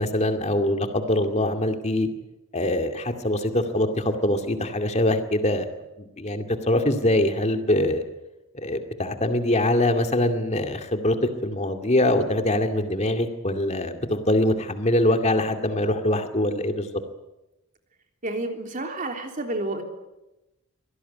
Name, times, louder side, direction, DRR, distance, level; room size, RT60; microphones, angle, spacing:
voice 1, 0.0-2.1 2.5-5.7 6.0-8.0 8.5-11.2 11.4-16.9, left 1 dB, 30° left, 7 dB, 2.3 m, -23 dB
voice 2, 18.2-19.8, right 2 dB, 40° right, 4 dB, 3.3 m, -30 dB
24.5 x 18.0 x 9.5 m, 0.96 s
head